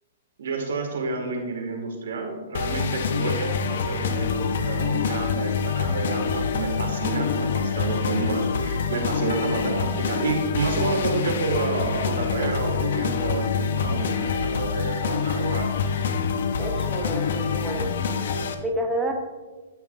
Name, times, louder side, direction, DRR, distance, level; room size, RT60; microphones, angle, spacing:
voice 1, 0.4-15.7, right 3 dB, 80° right, 1 dB, 2.1 m, -29 dB
sound 1, 2.5-18.5, left 6 dB, 70° left, 0.8 m, -26 dB
voice 2, 16.6-17.9 18.3-19.1, right 1 dB, 5° right, -1 dB, 1.2 m, -30 dB
13.0 x 5.8 x 2.7 m, 1.3 s
hypercardioid pair, 135°, 0 cm